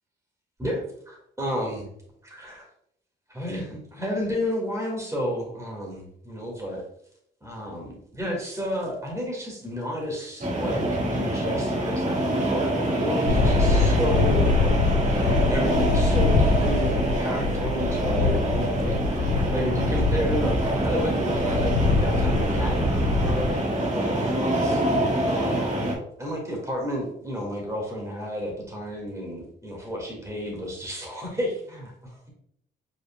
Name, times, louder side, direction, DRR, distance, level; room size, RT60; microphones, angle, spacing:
voice 1, 0.6-1.9 2.2-2.6 3.3-6.8 7.4-10.8 11.1-14.8 15.1-23.6 23.9-25.0 25.3-25.8 26.2-32.3, equal, 15° right, -1 dB, 2.0 m, -31 dB
sound 1, 10.4-25.9, right 1 dB, 35° right, 1.7 m, -25 dB
Wind and Gull Sweden, 13.3-23.5, left 4 dB, 90° left, 0.5 m, -24 dB
4.8 x 4.8 x 2.3 m, 0.69 s
cardioid pair, 90°, 20 cm